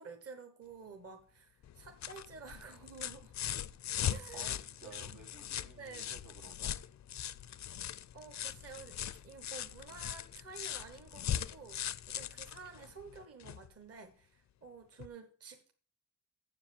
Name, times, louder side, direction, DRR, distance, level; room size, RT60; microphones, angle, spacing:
voice 1, 0.0-3.3 4.1-4.6 4.8-5.2 5.7-6.1 8.1-15.7, right 5 dB, 50° right, 1.2 m, -51 dB
sound 1, 1.6-13.7 15.0-15.1, left 10 dB, 60° left, 0.4 m, -40 dB
voice 2, 4.3-6.8, right 5 dB, 80° right, 1.9 m, -54 dB
7.5 x 7.5 x 7.2 m
wide cardioid pair, 160°, 31 cm